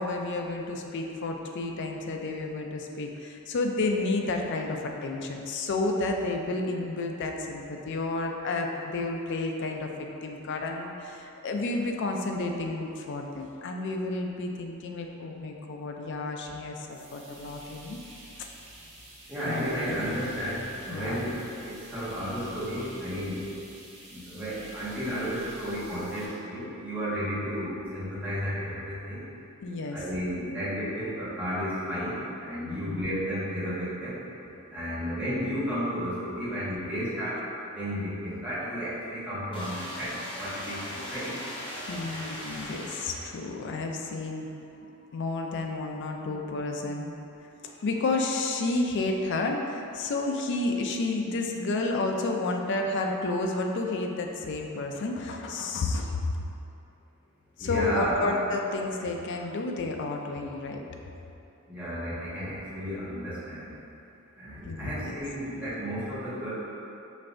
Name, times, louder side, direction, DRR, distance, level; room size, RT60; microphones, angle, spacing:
voice 1, 0.0-18.0 19.4-20.1 20.9-21.2 29.6-30.0 32.7-33.0 41.9-44.5 45.1-47.1 47.6-56.3 57.6-60.8 64.6-65.2, left 2 dB, 55° left, 2 dB, 0.4 m, -31 dB
sound 1, 16.9-26.3, right 1 dB, 30° right, 0.8 m, -48 dB
voice 2, 19.3-23.4 24.1-29.2 29.9-34.2 34.7-37.4 37.7-41.3 41.9-42.1 57.6-58.3 61.7-63.8 64.4-66.5, equal, 5° right, -13 dB, 1.3 m, -33 dB
sound 2, 39.5-43.6, equal, 25° left, 0.8 m, -39 dB
5.2 x 3.3 x 2.6 m, 2.8 s
head